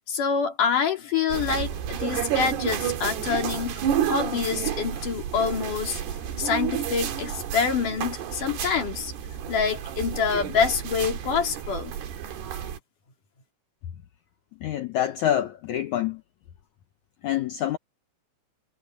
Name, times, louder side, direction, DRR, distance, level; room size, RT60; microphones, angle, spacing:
voice 1, 0.1-6.0 6.4-9.1 9.5-12.0, left 6 dB, 55° left, 4.4 m, -26 dB
sound 1, 1.3-12.8, right 9 dB, 90° right, 4.2 m, -30 dB
voice 2, 14.6-16.2 17.2-17.8, left 11 dB, 75° left, 1.7 m, -26 dB
omnidirectional pair, 4.5 m